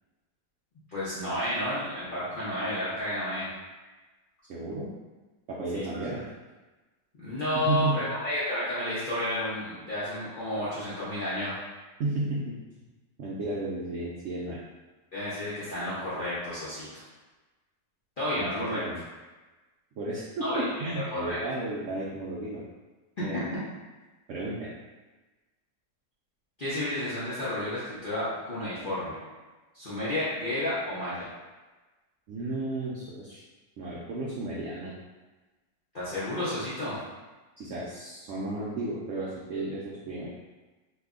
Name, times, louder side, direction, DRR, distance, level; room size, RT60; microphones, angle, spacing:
voice 1, 0.9-3.5 5.7-5.8 7.2-11.5 15.1-16.9 18.2-18.8 20.4-21.4 23.3-23.6 26.6-29.2 29.7-31.3 35.9-37.0, left 1 dB, 55° left, -11 dB, 0.6 m, -31 dB
voice 2, 4.5-4.9 5.5-6.3 7.7-8.1 12.0-12.5 13.2-14.6 18.3-19.0 20.0-22.6 23.2-23.4 24.3-24.7 32.3-33.4 33.8-34.9 37.6-40.3, right 2 dB, 80° right, -5 dB, 0.6 m, -33 dB
3.2 x 2.2 x 3.6 m, 1.2 s
omnidirectional pair, 1.9 m